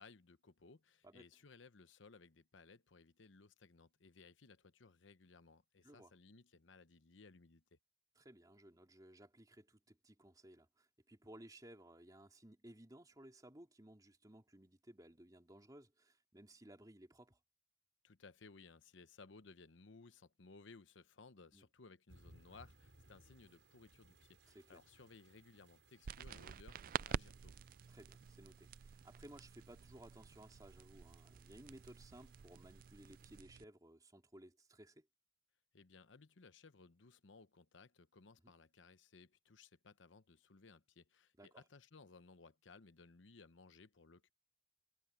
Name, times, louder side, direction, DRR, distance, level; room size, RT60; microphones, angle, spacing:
voice 1, 0.0-7.8 18.0-27.6 35.7-44.3, left 4 dB, 90° left, 0.9 m, -61 dB
voice 2, 8.1-17.4 21.5-21.7 24.5-24.8 27.9-35.1 38.4-38.5 41.4-41.6, right 1 dB, 20° right, 3.2 m, -59 dB
sound 1, 22.1-33.4, right 2 dB, 75° right, 6.1 m, -68 dB
sound 2, 26.0-33.6, right 7 dB, 50° right, 0.3 m, -48 dB
head